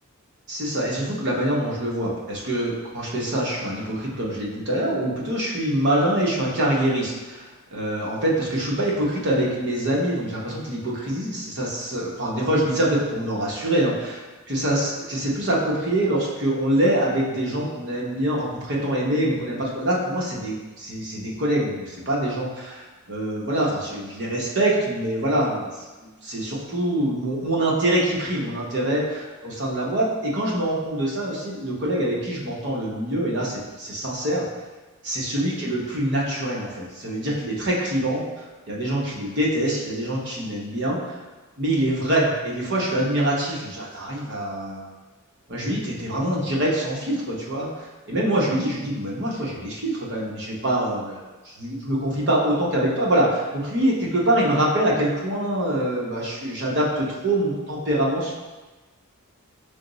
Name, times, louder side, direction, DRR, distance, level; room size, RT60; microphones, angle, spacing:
voice 1, 0.5-25.7 26.2-34.4 35.0-38.2 38.7-41.2 41.6-44.9 45.5-51.2 51.4-58.3, right 1 dB, 55° right, -4 dB, 0.9 m, -25 dB
5.0 x 2.0 x 3.8 m, 1.2 s
head